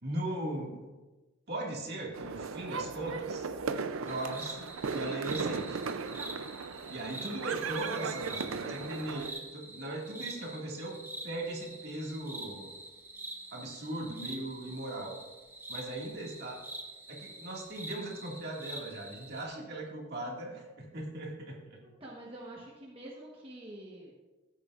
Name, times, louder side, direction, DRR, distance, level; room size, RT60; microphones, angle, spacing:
voice 1, 0.0-0.8 1.5-3.5 4.0-5.8 6.9-11.0 11.2-12.7 13.5-15.2 15.7-16.6 17.1-21.8, right 1 dB, 50° right, -2 dB, 2.0 m, -38 dB
sound 1, 2.1-9.3, right 5 dB, 85° right, 0.5 m, -37 dB
sound 2, 4.1-19.5, right 2 dB, 10° right, 0.8 m, -46 dB
voice 2, 21.8-24.1, right 1 dB, 25° right, -4 dB, 1.1 m, -47 dB
14.0 x 8.4 x 2.5 m, 1.2 s
head